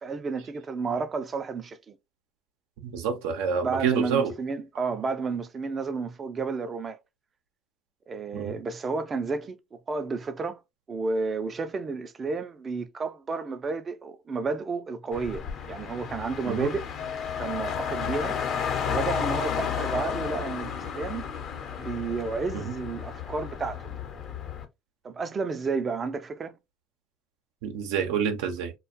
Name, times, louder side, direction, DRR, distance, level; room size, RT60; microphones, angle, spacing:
voice 1, 0.0-2.0 3.6-7.0 8.1-10.6 10.9-16.8 17.1-18.4 18.9-21.3 21.8-24.0 25.0-26.6, right 4 dB, 30° right, 0.5 m, -31 dB
voice 2, 2.8-4.3 8.3-8.6 16.5-16.7 22.5-22.7 27.6-28.7, right 6 dB, 80° right, 0.6 m, -28 dB
Car, 15.1-24.6, left 7 dB, 55° left, 0.9 m, -33 dB
Wind instrument woodwind instrument, 17.0-20.6, left 9 dB, 80° left, 0.3 m, -36 dB
2.3 x 2.3 x 2.5 m
supercardioid pair, 90°, 0 cm